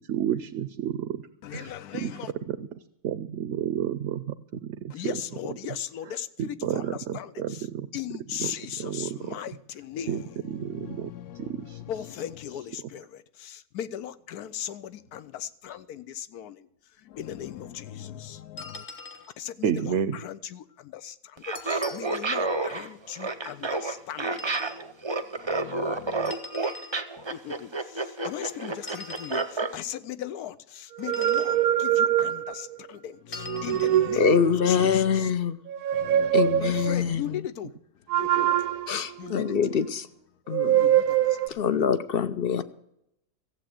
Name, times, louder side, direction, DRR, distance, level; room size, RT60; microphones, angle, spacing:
voice 1, 0.0-1.2 1.5-1.7 2.0-2.1 2.5-2.7 3.0-5.1 6.4-7.9 8.4-8.5 8.8-9.3 10.1-10.2 10.5-11.8 19.6-20.2, right 10 dB, 65° right, 0.8 m, -31 dB
voice 2, 1.4-2.3 4.9-7.7 7.9-16.7 17.0-18.8 19.4-26.3 27.2-35.3 36.0-37.8 38.1-38.8 39.2-39.6 40.8-41.7, left 10 dB, 85° left, 1.2 m, -38 dB
sound 1, 18.6-19.3 21.5-22.3 24.3-24.8 26.2-27.0 28.8-29.5 31.0-31.6 33.3-34.0, left 3 dB, 40° left, 1.4 m, -42 dB
Laughter, 21.4-29.7, right 3 dB, 25° right, 0.6 m, -30 dB
sound 2, 31.0-32.8 33.4-34.7 35.7-37.0 38.1-39.9 40.5-41.5, right 11 dB, 85° right, 1.2 m, -24 dB
voice 3, 34.2-35.5 36.3-37.4 38.9-40.1 40.5-40.8 41.5-42.6, left 7 dB, 55° left, 0.7 m, -24 dB
15.0 x 7.8 x 7.6 m
omnidirectional pair, 1.6 m